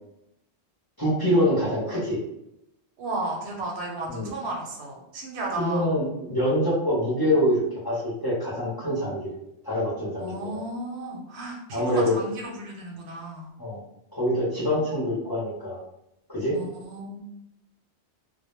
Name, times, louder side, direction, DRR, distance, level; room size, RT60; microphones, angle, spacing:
voice 1, 1.0-2.2 4.1-4.3 5.6-9.3 9.6-10.3 11.7-12.2 13.6-13.8 14.1-15.8 16.3-16.6, equal, 25° left, -8 dB, 0.7 m, -25 dB
voice 2, 3.0-5.9 10.2-13.5 16.5-17.2, right 2 dB, 75° right, -1 dB, 0.9 m, -34 dB
2.1 x 2.1 x 3.0 m, 0.81 s
omnidirectional pair, 1.1 m